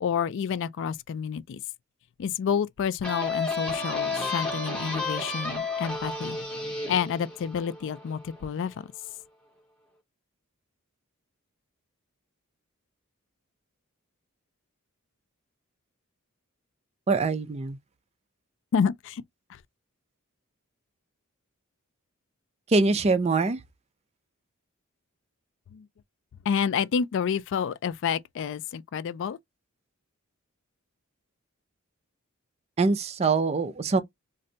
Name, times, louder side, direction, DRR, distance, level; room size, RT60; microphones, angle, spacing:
voice 1, 0.0-1.6 2.2-6.4 6.9-8.9 18.7-19.2 19.5-19.6 25.7-25.9 26.5-29.4, left 7 dB, 60° left, 0.3 m, -29 dB
sound 1, 3.0-8.5, left 3 dB, 5° left, 0.9 m, -32 dB
voice 2, 17.1-17.8 22.7-23.6 32.8-34.0, right 3 dB, 30° right, 0.4 m, -23 dB
2.6 x 2.2 x 3.8 m
head